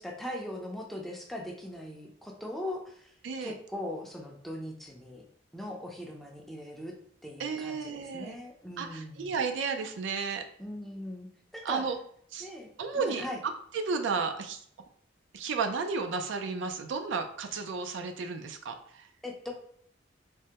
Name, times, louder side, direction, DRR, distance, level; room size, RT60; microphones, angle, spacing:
voice 1, 0.0-3.1 3.4-5.2 5.5-6.9 7.2-9.4 10.6-11.3 11.5-11.9 12.4-13.4 19.2-19.5, left 1 dB, ahead, -1 dB, 0.4 m, -40 dB
voice 2, 7.4-8.4 8.8-10.4 11.6-12.0 12.3-12.5 12.8-13.3 13.7-14.6 15.3-19.1, right 4 dB, 75° right, 6 dB, 0.4 m, -33 dB
3.3 x 2.0 x 2.8 m, 0.64 s
head